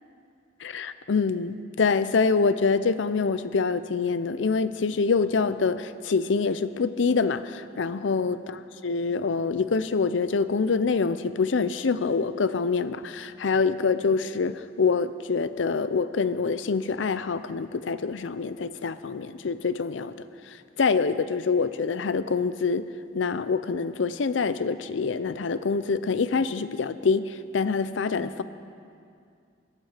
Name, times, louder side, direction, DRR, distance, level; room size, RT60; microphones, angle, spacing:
voice 1, 0.6-8.4 8.8-20.1 20.8-22.9 23.1-28.4, left 4 dB, 75° left, 14 dB, 0.5 m, -25 dB
17.5 x 12.0 x 5.0 m, 2.4 s
head